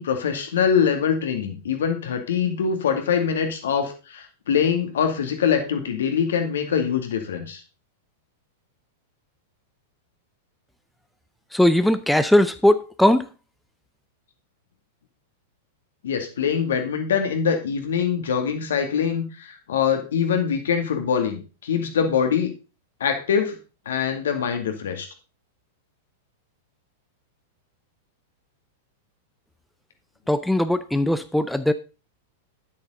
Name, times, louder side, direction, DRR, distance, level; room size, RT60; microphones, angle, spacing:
voice 1, 0.0-7.6 16.0-22.5 23.0-23.6 23.9-25.1, left 7 dB, 70° left, 5 dB, 2.2 m, -23 dB
voice 2, 11.5-13.3 30.3-31.7, left 1 dB, ahead, 11 dB, 0.6 m, -19 dB
9.9 x 8.5 x 3.9 m, 0.33 s
figure-of-eight pair, 100°, 0 cm